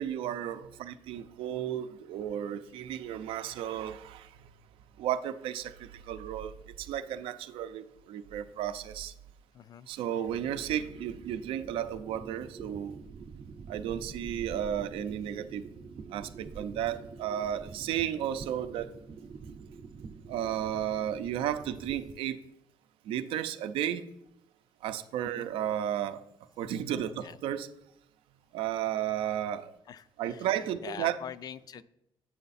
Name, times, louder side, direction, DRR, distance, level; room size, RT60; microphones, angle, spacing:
voice 1, 0.0-4.3 5.0-6.5 6.8-9.1 9.9-13.0 13.7-15.7 16.1-18.9 20.3-22.4 23.1-24.0 24.8-26.2 26.6-27.7 28.5-29.7 30.2-31.2, right 10 dB, 85° right, 11 dB, 0.5 m, -33 dB
voice 2, 9.5-9.9 25.4-25.5 27.2-27.4 29.9-30.5 30.8-31.8, left 8 dB, 45° left, 16 dB, 0.3 m, -43 dB
sound 1, 10.3-22.1, right 5 dB, 40° right, 0.7 m, -46 dB
7.8 x 5.5 x 4.1 m, 0.84 s
cardioid pair, 120°, 9 cm